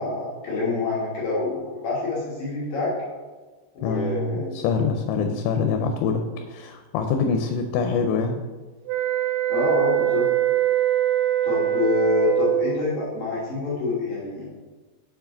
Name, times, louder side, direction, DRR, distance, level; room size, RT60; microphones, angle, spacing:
voice 1, 0.0-2.9 3.7-4.6 9.5-10.3 11.4-14.5, left 3 dB, 65° left, -6 dB, 2.5 m, -26 dB
voice 2, 3.8-6.2 6.5-8.4, left 5 dB, 90° left, 5 dB, 3.0 m, -25 dB
sound 1, 8.9-12.8, right 13 dB, 85° right, 3.1 m, -22 dB
6.9 x 4.8 x 3.8 m, 1.3 s
omnidirectional pair, 5.4 m